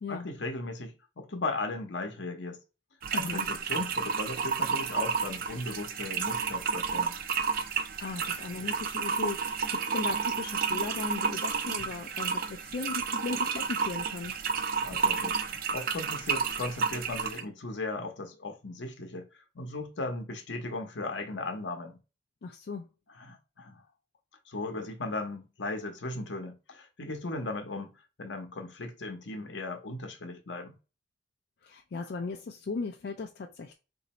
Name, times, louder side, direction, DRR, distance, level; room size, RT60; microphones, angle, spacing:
voice 1, 0.1-2.6 3.1-7.2 8.1-8.3 14.8-22.0 23.1-23.8 24.5-27.9 28.2-30.7 32.0-32.1, left 2 dB, 80° left, 0.8 m, -37 dB
sound 1, 3.0-17.4, right 6 dB, 50° right, 0.4 m, -31 dB
voice 2, 3.1-3.5 8.0-14.4 22.4-22.9 31.6-33.7, left 4 dB, 60° left, 0.4 m, -37 dB
2.9 x 2.6 x 4.2 m
head